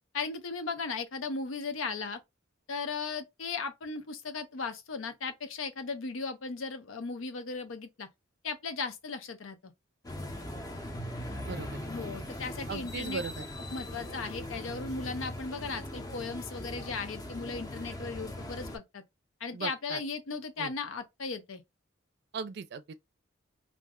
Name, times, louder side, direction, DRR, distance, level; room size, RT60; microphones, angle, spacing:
voice 1, 0.1-2.2 2.7-8.1 8.4-9.7 11.9-13.2 13.7-19.0 19.4-21.6, left 4 dB, 85° left, 0.6 m, -37 dB
sound 1, 10.0-18.8, left 1 dB, 20° left, 0.5 m, -40 dB
voice 2, 11.5-11.9 12.7-13.4 19.5-20.0 20.6-20.7 22.3-22.9, right 5 dB, 55° right, 0.4 m, -38 dB
2.5 x 2.1 x 3.5 m
head